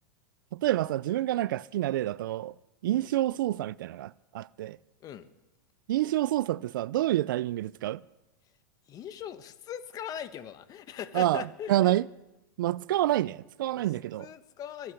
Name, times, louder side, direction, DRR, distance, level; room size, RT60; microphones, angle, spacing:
voice 1, 0.5-2.5 2.8-4.8 5.9-8.0 11.1-12.1 12.6-14.3, right 14 dB, 75° right, 0.4 m, -28 dB
voice 2, 8.9-11.9 13.7-13.8 14.2-14.9, left 9 dB, 35° left, 1.2 m, -40 dB
23.5 x 8.3 x 6.5 m
hypercardioid pair, 115°, 11 cm